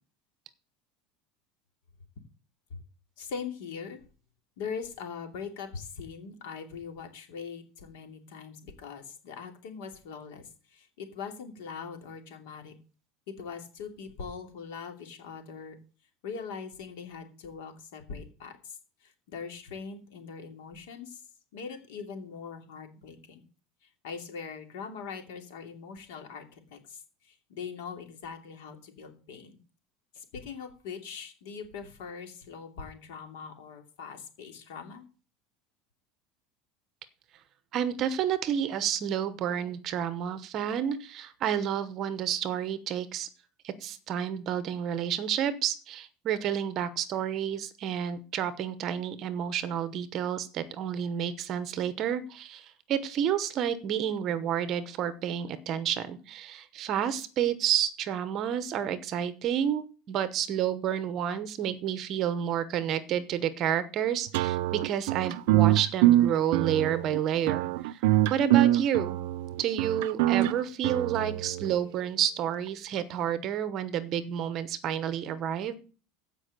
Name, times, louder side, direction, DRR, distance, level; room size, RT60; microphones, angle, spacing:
voice 1, 3.2-4.0 4.6-12.7 13.3-15.8 16.2-21.2 21.5-23.4 23.8-29.6 30.1-35.1, left 6 dB, 75° left, 5 dB, 2.8 m, -41 dB
voice 2, 37.7-43.3 43.6-69.2 69.6-75.8, right 9 dB, 30° right, 14 dB, 0.9 m, -30 dB
sound 1, 64.3-71.7, right 15 dB, 60° right, 0.5 m, -24 dB
15.5 x 5.4 x 6.6 m, 0.37 s
cardioid pair, 180°, 0 cm